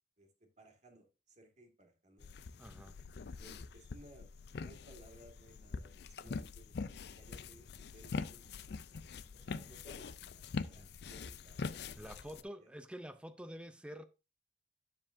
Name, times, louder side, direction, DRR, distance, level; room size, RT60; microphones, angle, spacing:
voice 1, 0.6-2.3 3.4-8.7 9.3-12.7, right 1 dB, 40° right, 1.9 m, -61 dB
sound 1, 2.2-12.4, left 4 dB, 65° left, 0.4 m, -44 dB
voice 2, 2.6-3.0 6.2-6.3 10.8-10.9 12.0-14.0, equal, 5° right, 0.4 m, -48 dB
9.8 x 7.3 x 2.6 m
head